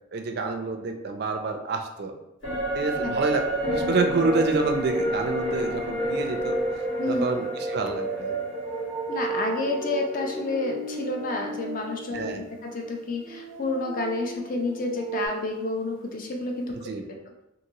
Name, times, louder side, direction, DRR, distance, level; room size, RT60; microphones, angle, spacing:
voice 1, 0.1-2.1 2.7-6.5 7.1-8.4 12.1-12.4 16.7-17.0, right 3 dB, 50° right, 5 dB, 0.3 m, -28 dB
sound 1, 2.4-11.9 12.3-12.4, equal, 60° left, 1.5 m, -30 dB
sound 2, 3.4-15.3, right 3 dB, 10° left, 0.8 m, -35 dB
voice 2, 9.1-16.8, left 2 dB, 40° left, 2 dB, 0.4 m, -29 dB
2.9 x 2.6 x 2.7 m, 0.87 s
head